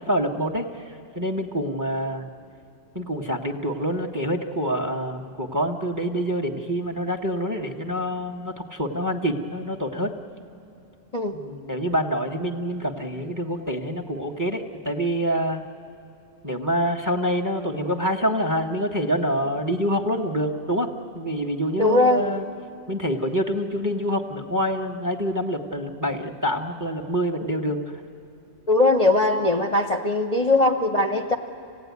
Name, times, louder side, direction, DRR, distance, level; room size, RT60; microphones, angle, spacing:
voice 1, 0.0-2.3 2.9-10.1 11.3-15.6 16.4-22.4 22.9-27.8, equal, 15° right, 4 dB, 1.1 m, -26 dB
voice 2, 21.8-22.3 28.7-31.3, left 2 dB, 35° left, 2 dB, 0.8 m, -20 dB
26.5 x 17.0 x 9.4 m, 2.8 s
omnidirectional pair, 1.4 m